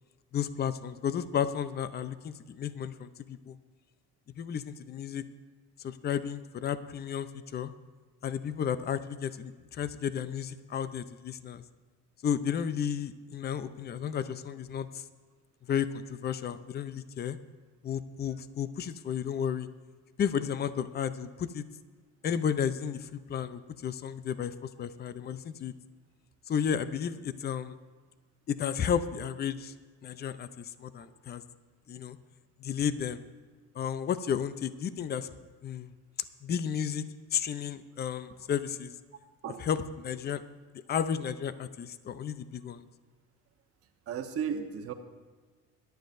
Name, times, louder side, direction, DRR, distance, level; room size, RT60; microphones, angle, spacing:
voice 1, 0.3-3.6 4.4-5.2 5.8-7.7 8.2-11.6 12.2-15.0 15.7-17.4 17.8-19.7 20.2-21.6 22.2-25.7 26.5-27.8 28.5-29.7 30.0-31.4 31.9-32.2 32.6-33.2 33.7-35.3 35.6-35.9 36.4-38.9 39.6-40.4 40.9-42.9, left 8 dB, 30° left, 13 dB, 0.6 m, -33 dB
voice 2, 44.1-44.9, right 7 dB, 50° right, 5 dB, 1.1 m, -35 dB
21.5 x 11.5 x 2.7 m, 1.4 s
cardioid pair, 120°, 31 cm